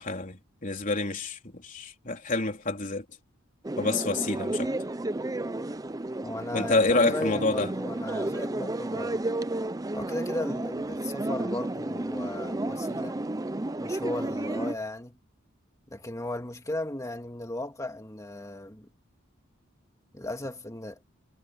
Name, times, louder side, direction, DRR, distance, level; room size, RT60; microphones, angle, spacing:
voice 1, 0.0-3.0 3.8-4.7 6.5-7.7, left 3 dB, 40° left, 3.9 m, -28 dB
sound 1, 3.6-14.7, right 2 dB, 15° right, 0.6 m, -32 dB
voice 2, 6.2-9.2 9.9-13.2 13.8-15.2 15.9-18.9 20.1-21.0, left 1 dB, 15° left, 2.3 m, -36 dB
head